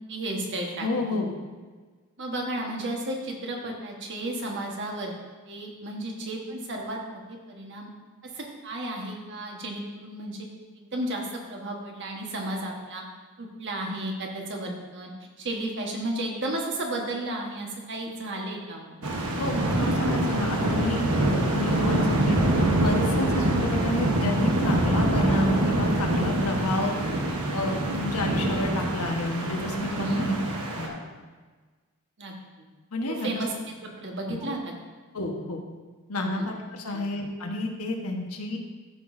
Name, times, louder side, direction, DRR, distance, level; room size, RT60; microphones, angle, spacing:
voice 1, 0.1-1.2 2.2-5.1 5.4-7.9 8.3-10.5 10.7-13.0 13.4-15.1 15.4-19.0 29.9-30.3 32.2-32.7 33.1-33.5 34.0-34.7 36.2-36.5 36.9-37.1, right 1 dB, 55° right, 0 dB, 1.3 m, -33 dB
voice 2, 0.8-1.3 19.4-22.4 22.8-27.0 27.5-30.4 30.7-31.0 32.9-33.4 34.3-34.5 35.1-35.6 36.1-38.6, left 2 dB, 85° left, 1 dB, 1.2 m, -30 dB
sound 1, 19.0-30.9, right 1 dB, 90° right, 1.1 m, -25 dB
13.5 x 6.1 x 2.6 m, 1.4 s
head